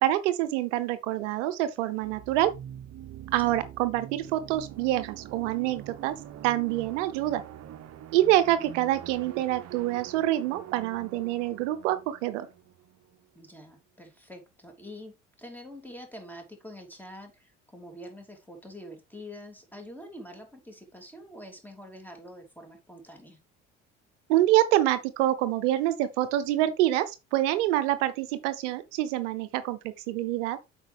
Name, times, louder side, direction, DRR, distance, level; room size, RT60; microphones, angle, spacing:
voice 1, 0.0-2.5 3.3-6.2 6.4-7.4 8.1-12.5 24.3-29.8 30.1-30.6, right 14 dB, 70° right, 0.8 m, -26 dB
sound 1, 2.0-13.6, right 11 dB, 40° right, 0.9 m, -45 dB
voice 2, 13.3-23.4, equal, 5° left, 2.9 m, -46 dB
8.1 x 5.3 x 3.4 m
hypercardioid pair, 60°, 37 cm